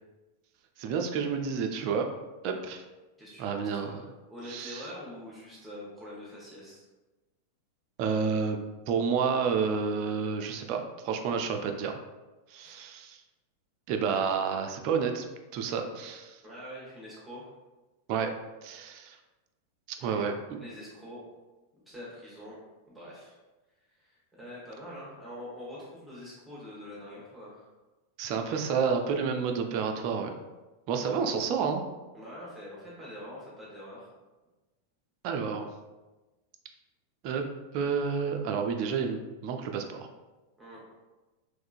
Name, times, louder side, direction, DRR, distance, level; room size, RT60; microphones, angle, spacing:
voice 1, 0.8-2.1 2.4-2.8 3.4-4.0 4.4-4.9 8.0-8.6 8.9-12.0 12.5-13.2 13.9-15.3 15.5-16.4 18.1-18.3 18.6-19.2 19.9-20.6 28.2-30.3 30.9-31.8 35.2-35.7 37.2-37.5 37.7-40.1, right 6 dB, 45° right, 4 dB, 0.3 m, -30 dB
voice 2, 3.2-6.8 12.6-12.8 16.4-17.5 20.0-20.3 20.6-21.2 21.9-22.6 22.9-23.4 23.9-27.7 32.1-34.1 40.6-40.8, equal, 5° right, -7 dB, 1.0 m, -44 dB
3.5 x 3.1 x 2.4 m, 1.1 s
figure-of-eight pair, 90°, 0 cm